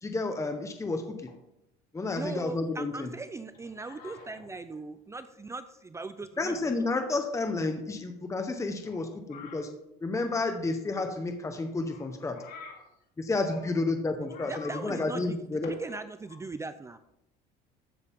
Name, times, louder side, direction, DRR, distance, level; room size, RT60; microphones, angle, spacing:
voice 1, 0.0-1.3 1.9-3.1 6.4-9.7 10.0-12.4 13.2-15.7, left 3 dB, 15° left, 6 dB, 1.1 m, -31 dB
voice 2, 2.2-6.6 14.5-15.4 15.6-17.0, right 3 dB, 15° right, 11 dB, 0.5 m, -39 dB
voice 3, 3.9-4.3 9.3-9.6 12.3-12.8 14.4-14.8 15.6-15.7, left 6 dB, 55° left, 1 dB, 2.7 m, -45 dB
14.5 x 6.4 x 3.7 m, 0.83 s
supercardioid pair, 105°, 18 cm